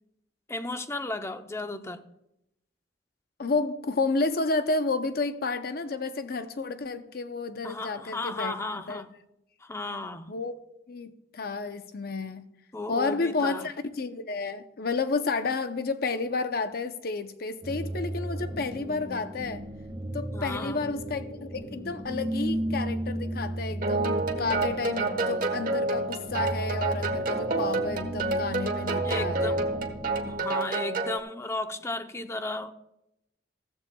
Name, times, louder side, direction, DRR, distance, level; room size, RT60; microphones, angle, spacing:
voice 1, 0.5-2.0 7.6-9.1 9.6-10.3 12.7-13.7 20.3-20.9 29.0-29.7 30.3-32.7, left 2 dB, 15° left, 0.7 m, -34 dB
voice 2, 3.4-8.5 8.9-9.0 10.3-10.5 10.9-12.5 12.9-19.6 20.1-29.9, left 3 dB, 60° left, 0.7 m, -31 dB
sound 1, 17.6-30.4, right 1 dB, 25° right, 1.7 m, -35 dB
sound 2, 23.8-31.2, right 3 dB, 55° right, 1.3 m, -29 dB
15.5 x 14.5 x 2.3 m
head